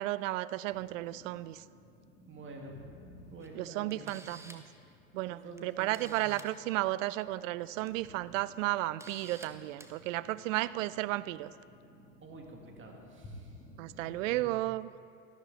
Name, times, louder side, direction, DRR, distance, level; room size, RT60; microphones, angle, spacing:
voice 1, 0.0-1.6 3.5-4.6 5.1-11.5 13.8-14.9, right 17 dB, 65° right, 18 dB, 0.5 m, -33 dB
sound 1, 0.7-14.4, left 1 dB, 25° left, 2.7 m, -56 dB
voice 2, 2.3-2.8 3.1-4.3 5.3-6.3 12.2-13.6 14.2-14.6, right 2 dB, 30° right, 1 dB, 2.0 m, -48 dB
Camera, 3.4-3.5 3.9-4.7 5.6-5.7 5.9-6.5 7.7-7.9 8.3-8.4 9.0-9.5 9.8-9.9, right 2 dB, 5° right, 0.9 m, -51 dB
13.0 x 11.5 x 4.0 m, 2.5 s
hypercardioid pair, 80°, 42 cm